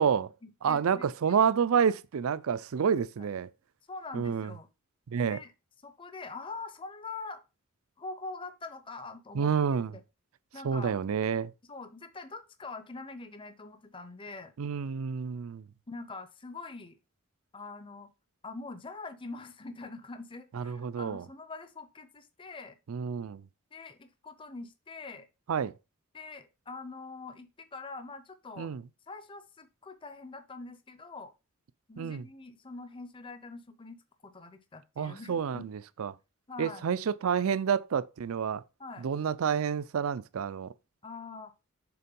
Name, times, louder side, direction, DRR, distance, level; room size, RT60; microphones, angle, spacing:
voice 1, 0.0-1.5 3.9-4.7 5.2-5.5 5.8-7.4 8.0-9.5 10.5-10.9 11.7-14.5 15.9-17.0 17.5-18.1 18.4-22.8 23.7-25.3 26.1-28.7 29.1-31.3 31.9-35.7 36.5-36.8 38.8-39.1 41.0-41.5, left 3 dB, 25° left, 0.6 m, -44 dB
voice 2, 0.6-3.5 4.1-4.5 5.1-5.4 9.3-10.0 10.6-11.5 14.6-15.7 20.5-21.3 22.9-23.4 25.5-25.7 28.6-28.8 32.0-32.3 35.0-36.2 36.6-38.6 39.0-40.7, right 7 dB, 75° right, 0.4 m, -29 dB
6.9 x 3.7 x 5.3 m
head